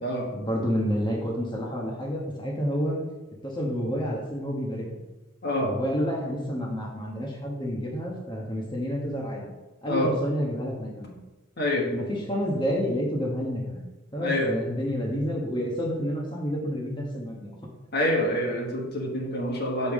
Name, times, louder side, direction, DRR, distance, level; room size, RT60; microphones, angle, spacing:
voice 1, 0.3-3.0 3.4-5.0 5.6-9.4 9.8-11.2 11.9-13.8 14.1-17.5, equal, 20° left, -2 dB, 1.2 m, -29 dB
voice 2, 11.6-11.9 14.2-14.5 17.9-19.9, left 1 dB, 50° left, -1 dB, 1.4 m, -26 dB
7.0 x 5.4 x 4.8 m, 1.1 s
head